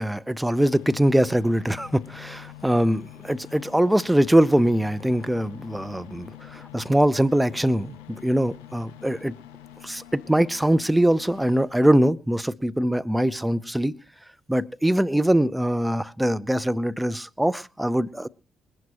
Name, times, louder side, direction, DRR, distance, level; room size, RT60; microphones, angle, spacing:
voice 1, 0.0-9.4 9.8-14.0 14.5-18.3, right 1 dB, 5° right, 0.8 m, -22 dB
sound 1, 0.6-11.6, left 14 dB, 80° left, 1.6 m, -45 dB
21.0 x 11.5 x 3.0 m
hypercardioid pair, 45°, 0 cm